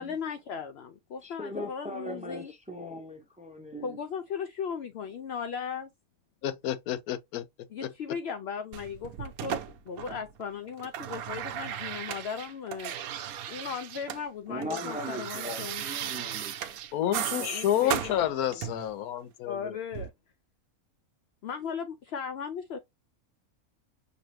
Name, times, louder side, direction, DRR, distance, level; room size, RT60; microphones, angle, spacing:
voice 1, 0.0-2.5 3.8-5.9 7.7-9.6 9.8-12.9 13.5-16.1 17.4-18.6 19.5-20.1 21.4-22.8, left 6 dB, 65° left, 0.6 m, -37 dB
voice 2, 1.2-4.0 14.5-16.8, equal, 5° right, 0.7 m, -39 dB
voice 3, 6.4-7.4 7.8-7.9 16.9-19.8, left 11 dB, 85° left, 1.1 m, -29 dB
sound 1, 8.7-10.4 10.7-14.2 14.5-18.9 19.9-20.1, right 10 dB, 85° right, 1.1 m, -36 dB
6.0 x 2.8 x 3.0 m
omnidirectional pair, 1.5 m